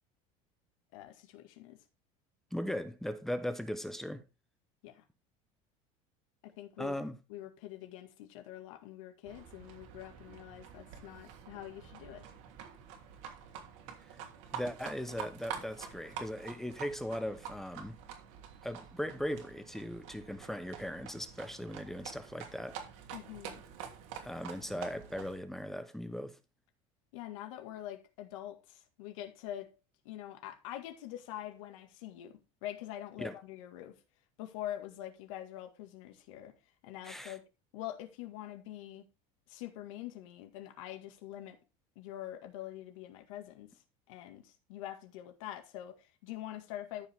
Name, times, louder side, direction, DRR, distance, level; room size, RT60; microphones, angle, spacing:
voice 1, 0.9-1.8 4.8-5.0 6.4-7.0 7.3-12.2 23.1-23.6 27.1-29.8 30.0-34.0 34.4-36.5 36.8-37.4 37.7-39.0 39.5-41.6 42.0-43.7 44.1-47.1, left 13 dB, 85° left, 2.0 m, -45 dB
voice 2, 2.5-4.2 6.8-7.2 14.5-18.0 18.6-22.8 24.2-26.4 33.2-33.3 37.0-37.4, equal, ahead, 0.8 m, -38 dB
Livestock farm animals working animals, 9.2-25.4, right 8 dB, 75° right, 2.9 m, -47 dB
13.5 x 5.6 x 3.6 m
cardioid pair, 165°, 16 cm